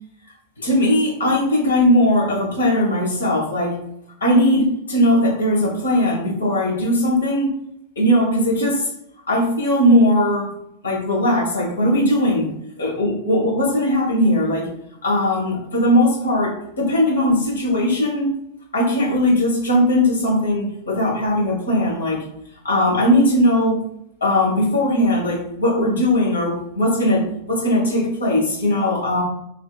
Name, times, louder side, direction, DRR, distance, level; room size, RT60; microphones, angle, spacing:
voice 1, 0.6-3.8 4.2-7.5 8.0-8.9 9.3-10.5 10.8-12.5 12.8-14.7 15.0-18.3 18.7-22.2 22.6-23.8 24.2-29.2, left 1 dB, 70° left, -4 dB, 1.2 m, -19 dB
3.1 x 2.7 x 2.3 m, 0.77 s
figure-of-eight pair, 90°, 0 cm